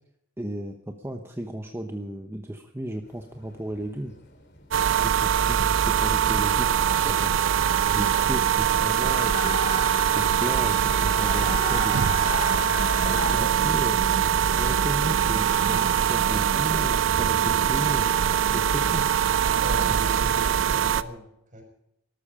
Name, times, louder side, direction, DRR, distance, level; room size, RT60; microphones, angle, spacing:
voice 1, 0.4-4.1 4.8-7.3 7.9-9.7 10.1-12.0 13.0-14.0 14.6-19.1, right 1 dB, 15° right, 4 dB, 1.1 m, -35 dB
sound 1, 3.1-13.4, left 4 dB, 60° left, 3.1 m, -36 dB
sound 2, 4.7-21.0, right 8 dB, 75° right, 0.6 m, -23 dB
voice 2, 13.3-14.3 19.6-21.6, equal, 40° right, 4 dB, 5.8 m, -40 dB
20.0 x 13.0 x 5.0 m, 0.82 s
head